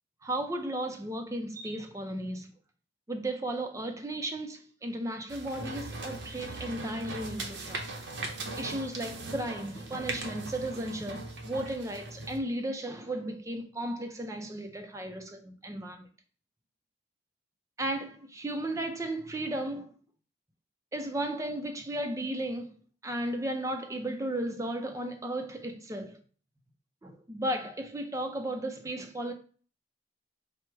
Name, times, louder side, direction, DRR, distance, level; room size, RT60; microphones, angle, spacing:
voice 1, 0.2-2.5 3.1-7.8 8.6-16.1 17.8-19.9 20.9-22.8 23.0-26.2 27.0-29.3, right 1 dB, 15° right, 0.4 m, -35 dB
sound 1, 5.3-12.4, right 2 dB, 70° right, 0.7 m, -39 dB
4.4 x 2.1 x 4.5 m
head